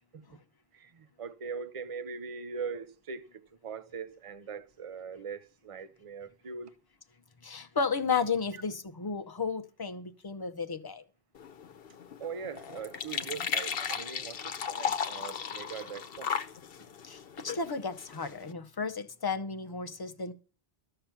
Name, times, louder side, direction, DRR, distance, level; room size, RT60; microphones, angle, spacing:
voice 1, 0.7-6.7 8.5-8.6 12.2-16.3, right 6 dB, 35° right, 0.7 m, -41 dB
voice 2, 7.4-11.0 17.1-20.3, left 5 dB, 25° left, 0.7 m, -33 dB
sound 1, 11.3-18.5, left 7 dB, 65° left, 1.0 m, -36 dB
13.5 x 6.7 x 5.8 m
omnidirectional pair, 1.1 m